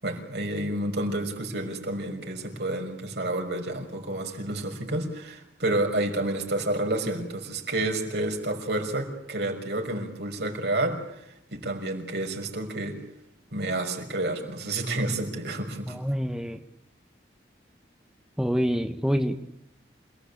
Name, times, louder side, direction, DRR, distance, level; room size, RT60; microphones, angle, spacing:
voice 1, 0.0-11.2 11.5-13.0 13.5-16.0, right 1 dB, 70° right, 2 dB, 6.0 m, -30 dB
voice 2, 15.9-16.6 18.4-19.4, equal, 5° right, 5 dB, 1.2 m, -26 dB
28.5 x 18.5 x 8.6 m, 0.79 s
head